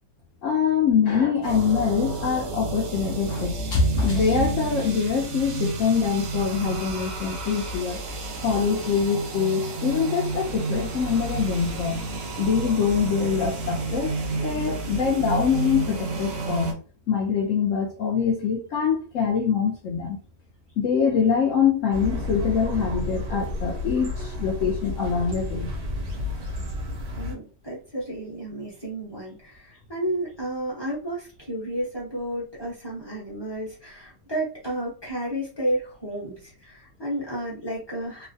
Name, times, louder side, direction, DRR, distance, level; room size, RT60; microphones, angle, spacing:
voice 1, 0.4-8.0 8.4-12.0 12.4-14.1 14.4-16.8 17.1-20.2 20.8-25.7, left 6 dB, 70° left, 0.7 m, -24 dB
sound 1, 1.4-16.7, right 2 dB, 65° right, 0.8 m, -30 dB
sound 2, 21.9-27.4, left 2 dB, 85° right, 1.4 m, -31 dB
voice 2, 27.2-38.3, right 1 dB, 20° left, 0.7 m, -32 dB
3.0 x 2.1 x 2.6 m
omnidirectional pair, 1.8 m